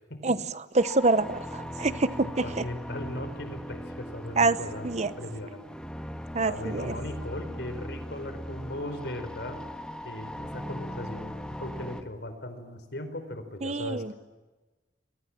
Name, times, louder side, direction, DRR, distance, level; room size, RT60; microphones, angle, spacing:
voice 1, 0.2-2.7 4.4-4.6 4.8-5.1 6.3-7.0 13.6-14.1, right 3 dB, 40° right, 14 dB, 1.0 m, -26 dB
sound 1, 0.8-12.0, equal, 5° left, 1.7 m, -39 dB
voice 2, 2.4-4.9 5.2-5.6 6.4-9.6 10.0-14.1, left 1 dB, 70° left, 9 dB, 4.7 m, -38 dB
30.0 x 23.0 x 7.4 m, 1.2 s
head